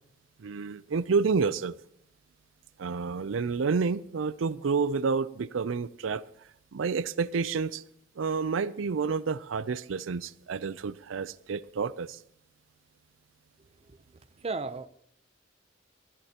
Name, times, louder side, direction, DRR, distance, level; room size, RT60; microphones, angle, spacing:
voice 1, 0.4-1.8 2.8-6.2 6.7-7.8 8.2-12.2, right 5 dB, 85° right, 17 dB, 0.5 m, -29 dB
voice 2, 13.6-14.0 14.4-14.9, right 3 dB, 30° right, 12 dB, 0.6 m, -36 dB
22.5 x 14.0 x 2.9 m, 0.70 s
head